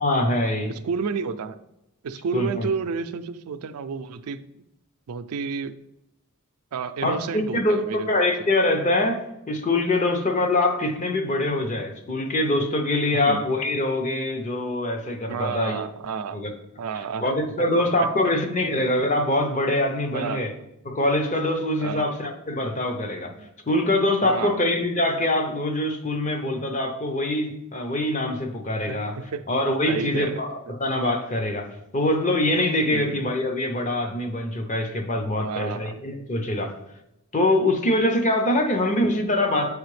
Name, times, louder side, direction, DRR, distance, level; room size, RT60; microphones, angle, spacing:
voice 1, 0.0-0.7 2.3-2.7 7.0-15.9 16.3-16.5 17.2-20.5 20.8-23.3 23.7-29.2 29.5-36.7 37.3-39.8, left 1 dB, 35° left, 5 dB, 0.7 m, -24 dB
voice 2, 0.7-1.6 2.0-4.4 5.1-5.7 6.7-8.5 13.1-13.4 15.3-16.4 16.8-18.1 20.1-20.5 21.8-22.1 23.4-23.5 24.2-24.6 28.9-29.4 29.8-30.5 32.9-33.2 35.4-36.0, right 5 dB, 80° right, 11 dB, 0.4 m, -31 dB
7.4 x 4.8 x 3.2 m, 0.88 s
head